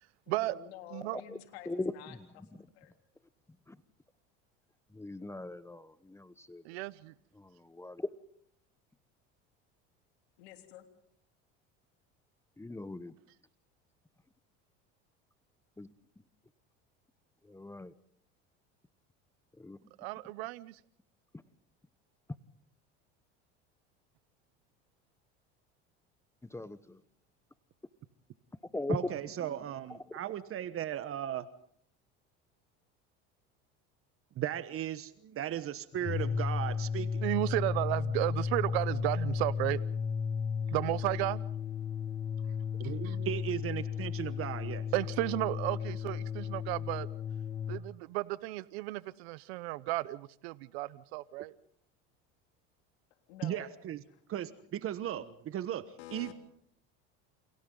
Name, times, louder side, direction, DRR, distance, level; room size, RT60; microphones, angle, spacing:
voice 1, 0.3-2.4 2.7-2.9 10.4-10.9 53.3-53.7 56.0-56.3, left 12 dB, 85° left, 5 dB, 3.5 m, -49 dB
voice 2, 1.0-1.4 1.6-1.9 2.6-2.7 3.7-3.8 4.9-6.6 7.3-8.1 12.6-13.1 15.8-15.9 17.4-17.9 19.6-19.8 26.5-27.0 28.7-29.1 29.4-29.6 29.9-30.0, left 2 dB, 10° left, 14 dB, 1.0 m, -39 dB
voice 3, 6.6-7.1 20.0-20.8 37.2-39.8 40.7-41.4 43.0-43.2 44.9-47.1 47.7-51.5, right 19 dB, 85° right, 17 dB, 0.8 m, -33 dB
voice 4, 28.9-31.5 34.3-37.2 42.8-44.9 53.4-54.0 54.3-56.3, right 11 dB, 45° right, 13 dB, 1.2 m, -37 dB
sound 1, 35.9-47.9, left 6 dB, 30° left, 1.5 m, -34 dB
29.5 x 28.5 x 3.9 m, 0.65 s
supercardioid pair, 100°, 31 cm